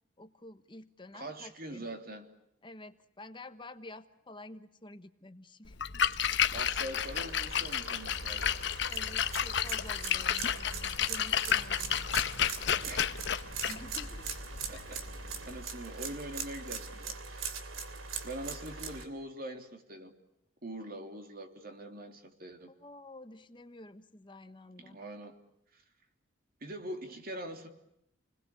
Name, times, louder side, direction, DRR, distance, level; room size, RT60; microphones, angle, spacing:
voice 1, 0.2-1.9 2.6-5.8 8.9-12.2 13.6-14.4 22.7-25.0, left 1 dB, 25° left, 10 dB, 1.1 m, -50 dB
voice 2, 1.1-2.2 6.5-8.5 12.8-13.3 14.7-15.0 15.4-17.6 18.2-20.1 20.6-22.7 24.8-25.3 25.7-25.8 26.6-27.7, right 1 dB, 45° right, 5 dB, 3.2 m, -43 dB
Splash splatter, 5.7-15.6, left 8 dB, 60° left, 1.0 m, -32 dB
sound 1, 6.9-19.1, right 5 dB, 85° right, 3.1 m, -41 dB
29.5 x 21.0 x 8.5 m, 0.81 s
head